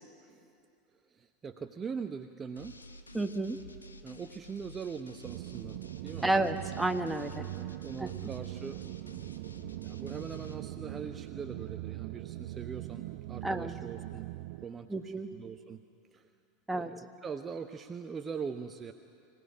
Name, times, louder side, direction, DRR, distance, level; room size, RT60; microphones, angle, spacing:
voice 1, 1.1-2.8 4.0-6.3 7.4-8.8 9.8-14.3 14.6-15.8 16.1-16.3 16.7-18.9, right 6 dB, 25° right, 7 dB, 0.9 m, -42 dB
sound 1, 2.6-10.5, left 1 dB, 90° left, 1.3 m, -52 dB
voice 2, 3.1-3.6 6.2-7.5 8.0-8.3 13.4-13.7 14.9-15.3 16.7-16.9, right 2 dB, 5° right, 5 dB, 1.5 m, -31 dB
sound 2, 5.2-14.7, right 17 dB, 60° right, 0.5 m, -41 dB
25.5 x 17.0 x 10.0 m, 2.5 s
figure-of-eight pair, 80°, 0 cm